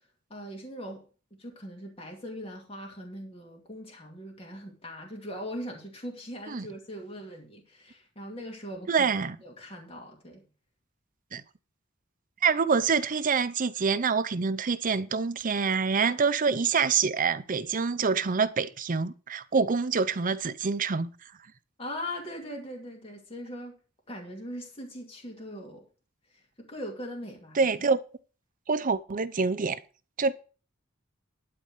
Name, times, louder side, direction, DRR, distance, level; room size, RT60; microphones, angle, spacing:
voice 1, 0.3-1.1 1.4-9.1 9.4-10.5 21.8-23.8 24.1-25.8 26.3-27.6, equal, 30° left, 2.5 m, -40 dB
voice 2, 8.9-9.4 11.3-11.4 12.4-21.1 27.6-28.0 28.7-29.8 30.2-30.3, right 5 dB, 40° right, 0.6 m, -26 dB
12.0 x 4.2 x 8.1 m
head